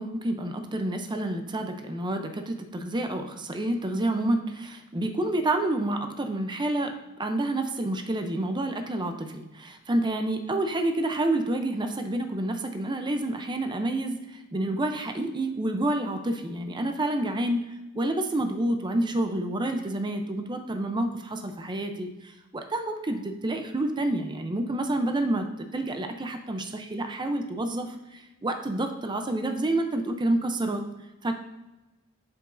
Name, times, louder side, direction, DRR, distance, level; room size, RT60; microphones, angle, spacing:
voice 1, 0.0-6.9 7.2-25.5 25.7-30.8 31.2-31.3, right 1 dB, 20° right, 6 dB, 0.5 m, -29 dB
7.8 x 7.0 x 2.5 m, 1.0 s
head